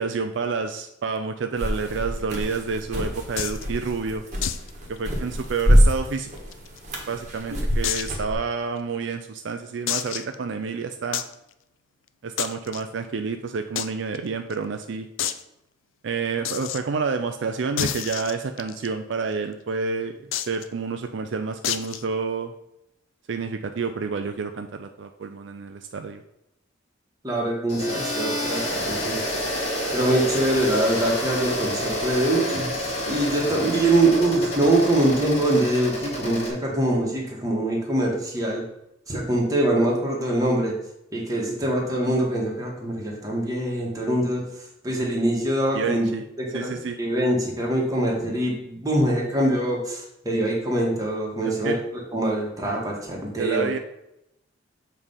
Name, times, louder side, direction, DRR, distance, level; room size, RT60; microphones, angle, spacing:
voice 1, 0.0-4.2 4.9-6.3 7.1-11.2 12.2-15.1 16.0-22.5 23.3-26.2 45.7-46.2 46.5-47.0 51.4-51.8 53.4-53.8, right 5 dB, 65° right, 7 dB, 0.4 m, -29 dB
sound 1, 1.6-8.3, equal, 40° right, 1.4 m, -25 dB
sound 2, 3.4-3.6 4.4-4.7 5.0-5.1 5.4-5.5 6.2-7.0 7.8-8.2 8.8-8.9 9.9-10.4 11.1-11.3 12.4-12.8 13.8-13.9 14.1-14.2 14.5-14.6 15.2-15.4 16.4-16.8 17.8-18.9 20.3-20.6 21.6-22.0, left 10 dB, 85° left, 0.4 m, -28 dB
voice 2, 27.2-29.2 29.9-38.6 39.1-40.8 41.1-44.4 44.8-46.1 46.4-51.7 52.1-53.7, right 1 dB, 20° right, -2 dB, 1.6 m, -23 dB
sound 3, 27.7-36.5, equal, 35° left, 1.8 m, -29 dB
7.3 x 3.3 x 5.4 m, 0.84 s
head